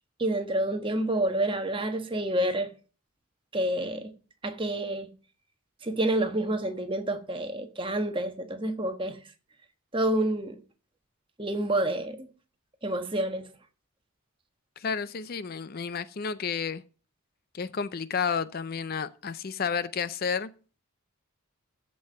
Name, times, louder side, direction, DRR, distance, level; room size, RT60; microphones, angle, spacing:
voice 1, 0.2-2.7 3.5-4.1 4.4-5.1 5.8-9.2 9.9-10.6 11.4-12.3 12.8-13.5, right 1 dB, 25° right, 1.2 m, -28 dB
voice 2, 14.8-16.8 17.5-20.5, left 6 dB, 45° left, 0.5 m, -31 dB
13.5 x 5.4 x 6.6 m
head